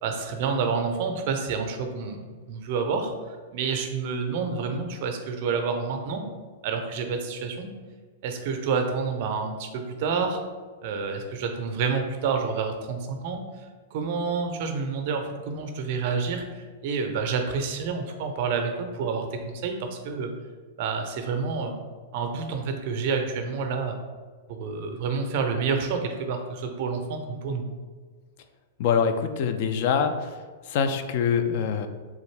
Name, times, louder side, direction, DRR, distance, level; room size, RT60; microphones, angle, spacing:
voice 1, 0.0-2.2 2.5-6.2 6.6-7.7 8.2-10.4 10.8-13.4 13.9-20.3 20.8-21.7 22.1-24.0 24.5-27.6, right 5 dB, 50° right, 5 dB, 0.5 m, -28 dB
voice 2, 28.8-30.3 30.7-31.9, left 6 dB, 50° left, 7 dB, 0.3 m, -24 dB
3.5 x 2.5 x 3.2 m, 1.5 s
figure-of-eight pair, 105°, 0 cm